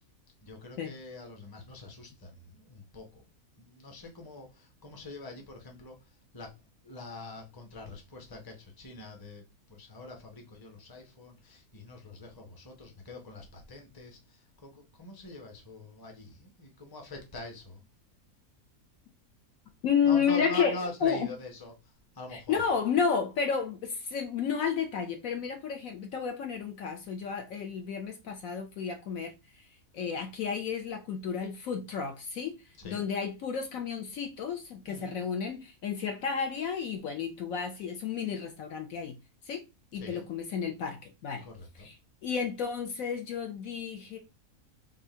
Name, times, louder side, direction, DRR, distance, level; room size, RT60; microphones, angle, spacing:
voice 1, 0.4-3.2 3.6-6.6 6.8-17.8 20.0-22.6 32.8-33.1 34.9-35.2 39.9-40.3 41.4-41.9, left 2 dB, 20° left, 0.8 m, -44 dB
voice 2, 19.8-21.3 22.3-29.3 29.9-32.6 32.8-39.2 39.4-39.6 39.9-41.5 41.8-41.9 42.2-44.2, left 6 dB, 65° left, 1.0 m, -31 dB
3.7 x 2.4 x 4.2 m
omnidirectional pair, 1.7 m